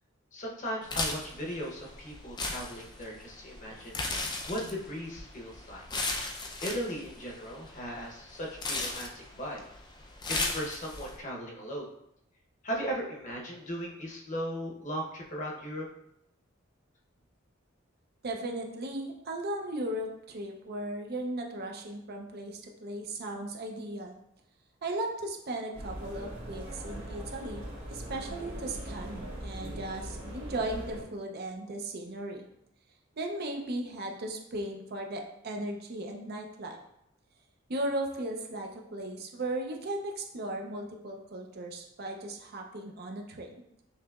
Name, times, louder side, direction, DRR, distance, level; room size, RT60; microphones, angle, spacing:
voice 1, 0.3-5.8 6.6-9.6 10.3-11.9 12.6-15.9, equal, 40° left, -2 dB, 0.8 m, -37 dB
sound 1, 0.8-11.2, left 2 dB, 20° left, 0.4 m, -37 dB
voice 2, 18.2-24.2 24.8-32.4 33.2-36.8 37.7-43.6, right 1 dB, 55° right, 2 dB, 0.6 m, -37 dB
sound 2, 25.7-31.0, equal, 75° right, 1.5 m, -40 dB
5.7 x 2.9 x 2.3 m, 0.77 s
head